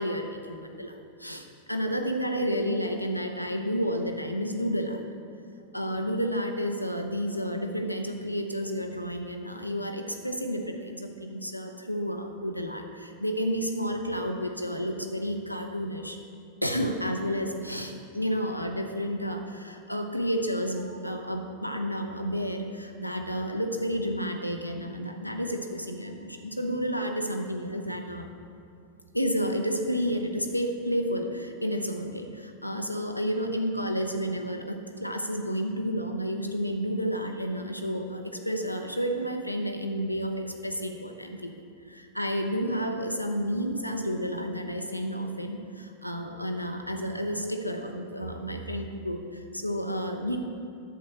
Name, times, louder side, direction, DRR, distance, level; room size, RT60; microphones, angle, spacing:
voice 1, 0.0-5.0 5.7-16.2 16.6-28.3 29.1-41.5 41.9-50.4, equal, 90° left, 4 dB, 0.8 m, -31 dB
10.5 x 7.7 x 4.4 m, 2.4 s
figure-of-eight pair, 90°, 0 cm